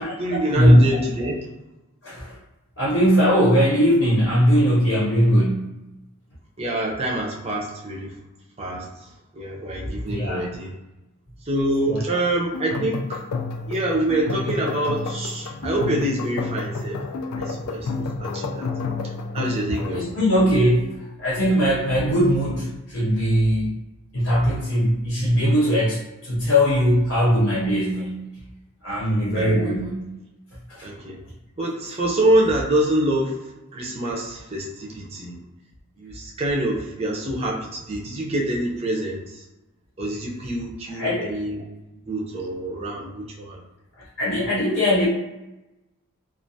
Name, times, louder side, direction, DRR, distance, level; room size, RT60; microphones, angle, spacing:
voice 1, 0.0-1.5 6.6-8.2 8.6-10.7 11.4-13.2 13.7-17.0 17.4-18.7 19.0-20.1 29.3-29.8 30.8-31.2 31.6-35.4 36.0-39.4 40.0-41.6 42.1-43.6, right 1 dB, 30° right, -3 dB, 0.5 m, -26 dB
voice 2, 2.0-2.4 2.8-5.8 10.1-10.5 11.9-12.2 19.9-20.9 21.2-23.7 24.1-28.3 28.8-30.0 30.7-30.9 40.9-41.4 44.2-45.1, equal, 60° left, -7 dB, 0.7 m, -20 dB
sound 1, 12.5-20.1, left 3 dB, 90° left, 0.3 m, -30 dB
2.4 x 2.2 x 2.6 m, 0.99 s
head